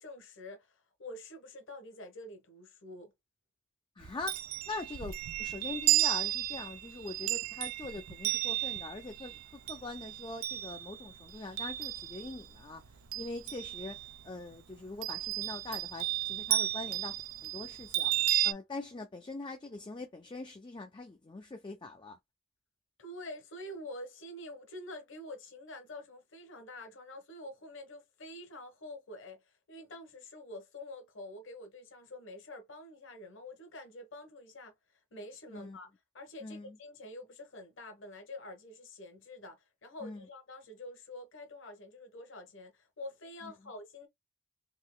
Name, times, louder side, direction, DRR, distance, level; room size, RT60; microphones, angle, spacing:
voice 1, 0.0-3.1 23.0-34.7 35.1-35.9 36.1-44.1, left 1 dB, 60° left, 1.1 m, -47 dB
voice 2, 4.0-4.4 4.7-14.0 14.2-18.1 18.4-22.2 35.5-35.8 36.4-36.8 40.0-40.3 43.4-43.5, left 3 dB, 20° left, 0.4 m, -43 dB
Chime, 4.0-12.5 12.9-14.2 15.0-18.5, right 14 dB, 80° right, 0.4 m, -33 dB
3.7 x 2.9 x 2.2 m
head